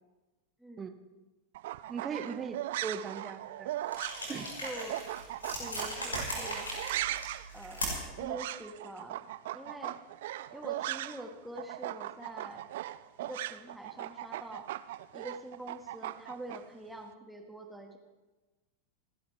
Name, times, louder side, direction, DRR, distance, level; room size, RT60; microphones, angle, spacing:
sound 1, 1.5-11.3 11.6-16.6, right 14 dB, 55° right, 0.5 m, -38 dB
voice 1, 1.9-3.7 4.3-4.5, right 6 dB, 20° right, 9 dB, 1.3 m, -39 dB
sound 2, 3.9-8.2, equal, 75° left, 5.8 m, -38 dB
voice 2, 4.6-5.0 5.6-6.7 7.5-9.2 9.5-10.0 10.5-12.6 13.2-14.7 15.1-18.0, right 1 dB, ahead, 2 dB, 2.0 m, -45 dB
30.0 x 12.0 x 3.5 m, 1.2 s
figure-of-eight pair, 90°, 0 cm